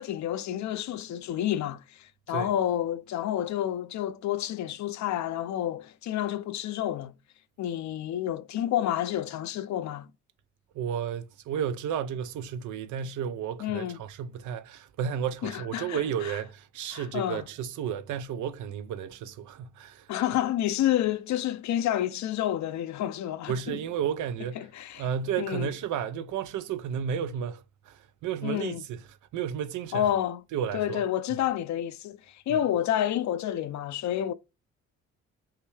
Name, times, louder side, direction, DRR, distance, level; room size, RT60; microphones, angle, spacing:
voice 1, 0.0-7.1 7.6-10.1 13.6-14.0 15.4-16.4 16.9-17.4 20.1-23.8 24.6-25.1 25.4-25.7 28.4-28.8 29.9-30.4 30.7-34.3, left 11 dB, 65° left, 0.6 m, -29 dB
voice 2, 10.7-20.1 23.5-24.7 25.0-29.0 29.3-30.0 30.5-31.0 32.5-32.6, right 8 dB, 75° right, 0.6 m, -32 dB
5.6 x 2.2 x 3.3 m
cardioid pair, 90°, 30 cm